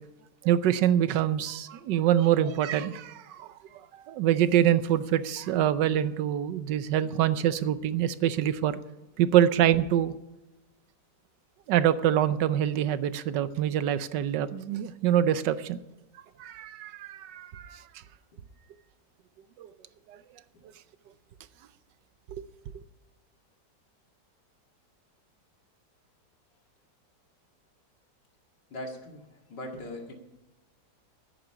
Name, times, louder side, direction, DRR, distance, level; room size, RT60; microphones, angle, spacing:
voice 1, 0.4-3.5 4.1-8.8 9.2-10.1 11.7-15.8 16.4-17.8 19.6-19.7 20.1-20.2 22.3-22.4, right 11 dB, 80° right, 14 dB, 1.3 m, -25 dB
voice 2, 28.7-30.1, left 1 dB, 75° left, 2 dB, 2.8 m, -40 dB
10.0 x 9.2 x 10.0 m, 1.0 s
omnidirectional pair, 1.9 m